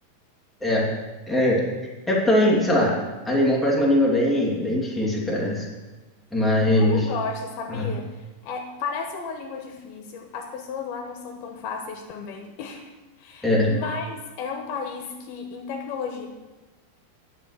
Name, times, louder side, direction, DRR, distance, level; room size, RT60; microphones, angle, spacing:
voice 1, 1.3-1.6 2.1-2.9 3.3-5.7 6.3-7.0 7.8-7.9 13.4-13.7, left 1 dB, ahead, -4 dB, 1.8 m, -21 dB
voice 2, 6.6-12.9 13.2-16.3, left 5 dB, 80° left, 4 dB, 2.9 m, -33 dB
11.0 x 7.3 x 8.4 m, 1.2 s
omnidirectional pair, 4.4 m